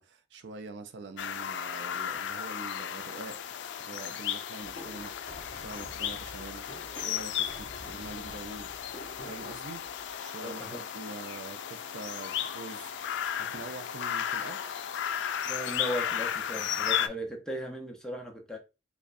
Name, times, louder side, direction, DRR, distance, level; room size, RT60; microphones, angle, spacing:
voice 1, 0.0-3.4 3.8-6.7 6.9-8.7 9.2-9.9 10.2-10.6 10.9-12.9 13.3-14.6, right 3 dB, 80° right, 0.4 m, -44 dB
sound 1, 1.2-17.1, left 9 dB, 85° left, 0.3 m, -35 dB
sound 2, 4.6-10.1, equal, 40° left, 0.8 m, -48 dB
voice 2, 10.4-10.8 15.4-18.6, equal, 5° left, 0.7 m, -37 dB
4.7 x 2.2 x 2.6 m
head